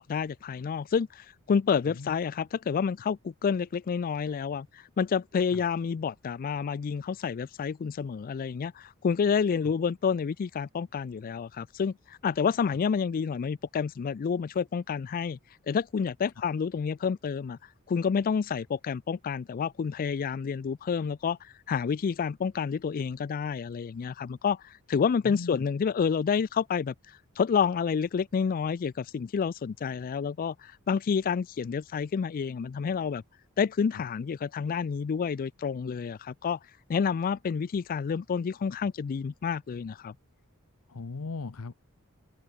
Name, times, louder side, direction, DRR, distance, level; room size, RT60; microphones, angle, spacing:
voice 1, 0.0-15.4 15.7-17.6 17.9-26.9 27.4-33.2 33.6-36.6 36.9-40.1, left 6 dB, 40° left, 0.3 m, -29 dB
voice 2, 25.2-25.6 33.9-34.0 40.9-41.7, left 4 dB, 85° left, 0.7 m, -38 dB
head